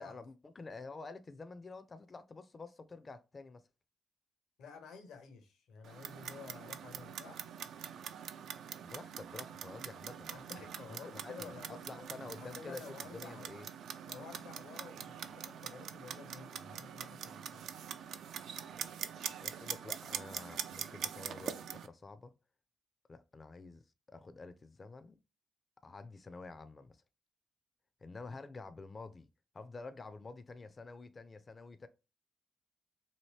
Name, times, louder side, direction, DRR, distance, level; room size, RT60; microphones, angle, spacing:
voice 1, 0.0-3.6 8.8-10.4 10.9-13.7 18.7-18.9 19.4-22.3 23.1-23.8 24.1-25.2 25.8-27.0 28.0-29.3 29.5-31.9, left 3 dB, 40° left, 0.4 m, -49 dB
voice 2, 4.6-7.5 10.3-13.5 14.1-17.8, left 5 dB, 80° left, 0.7 m, -52 dB
Clock, 5.8-21.9, right 8 dB, 75° right, 0.3 m, -44 dB
2.8 x 2.7 x 3.0 m
hypercardioid pair, 45°, 0 cm